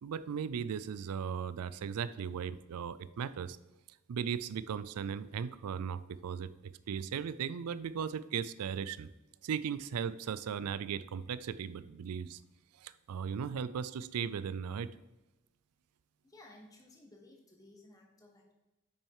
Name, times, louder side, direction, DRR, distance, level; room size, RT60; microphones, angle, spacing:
voice 1, 0.0-3.6 4.1-9.1 9.4-12.4 12.8-14.9, right 7 dB, 90° right, 15 dB, 0.4 m, -37 dB
voice 2, 16.2-18.5, left 1 dB, 15° left, 0 dB, 1.3 m, -57 dB
8.8 x 6.3 x 4.8 m, 1.0 s
head